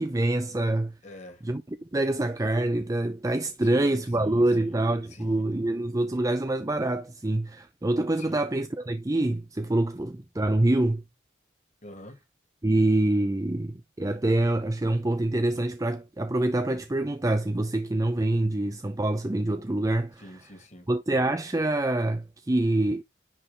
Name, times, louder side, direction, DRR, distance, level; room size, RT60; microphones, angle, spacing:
voice 1, 0.0-0.9 1.4-1.6 1.9-11.0 12.6-20.3 20.9-23.0, right 1 dB, 20° right, 0.5 m, -26 dB
voice 2, 1.0-1.5 3.6-4.8 5.1-5.5 8.2-8.4 11.8-12.2 20.2-20.9, left 1 dB, 40° left, 2.5 m, -46 dB
10.0 x 3.4 x 5.5 m
head